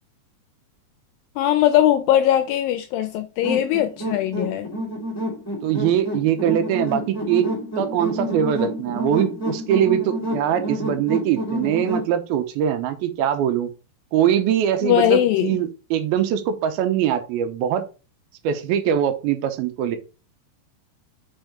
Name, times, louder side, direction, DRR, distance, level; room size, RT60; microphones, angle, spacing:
voice 1, 1.4-4.7 14.8-15.6, left 12 dB, 85° left, 2.0 m, -20 dB
sound 1, 3.4-12.1, equal, 15° left, 0.5 m, -28 dB
voice 2, 5.6-7.5 7.8-13.7 14.1-17.8 18.4-20.0, right 10 dB, 80° right, 2.5 m, -22 dB
5.3 x 4.5 x 5.1 m
omnidirectional pair, 4.5 m